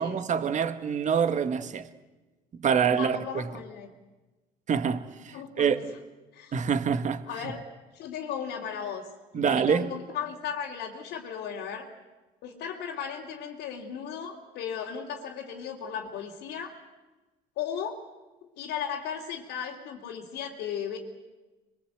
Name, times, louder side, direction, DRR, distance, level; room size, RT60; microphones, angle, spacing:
voice 1, 0.0-1.8 2.6-3.4 4.7-5.8 6.5-7.2 9.3-9.9, right 7 dB, 45° right, 1.8 m, -26 dB
voice 2, 2.9-3.9 5.3-5.8 6.3-6.5 7.3-7.6 7.9-9.1 9.3-11.9 12.4-16.8 17.6-18.0 18.6-21.0, left 8 dB, 85° left, 2.9 m, -36 dB
26.0 x 22.0 x 8.1 m
cardioid pair, 110°, 17 cm